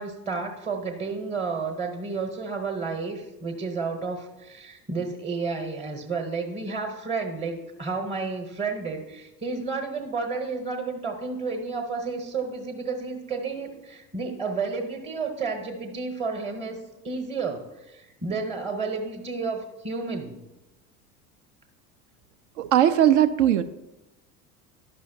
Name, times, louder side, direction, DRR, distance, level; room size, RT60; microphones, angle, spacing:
voice 1, 0.0-16.8 17.0-20.4, right 4 dB, 15° right, 5 dB, 0.9 m, -31 dB
voice 2, 22.6-23.6, right 11 dB, 50° right, 11 dB, 0.4 m, -19 dB
11.5 x 5.5 x 2.6 m, 1.0 s
figure-of-eight pair, 70°, 47 cm